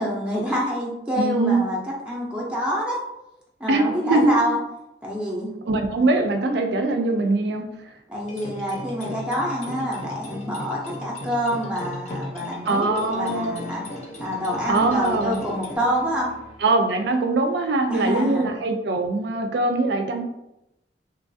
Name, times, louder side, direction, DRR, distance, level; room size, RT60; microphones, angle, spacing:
voice 1, 0.0-1.8 2.1-3.0 3.6-4.6 5.0-5.5 8.1-13.8 14.2-16.3 17.9-18.5, equal, 5° right, -4 dB, 0.5 m, -26 dB
voice 2, 1.1-1.7 3.7-4.3 5.7-7.9 12.7-13.5 14.7-15.4 16.6-20.2, right 2 dB, 65° right, 5 dB, 0.4 m, -22 dB
sound 1, 8.2-15.8, left 1 dB, 40° left, 0.6 m, -37 dB
sound 2, 12.3-16.9, equal, 80° left, 0.8 m, -44 dB
3.0 x 2.3 x 2.6 m, 0.87 s
head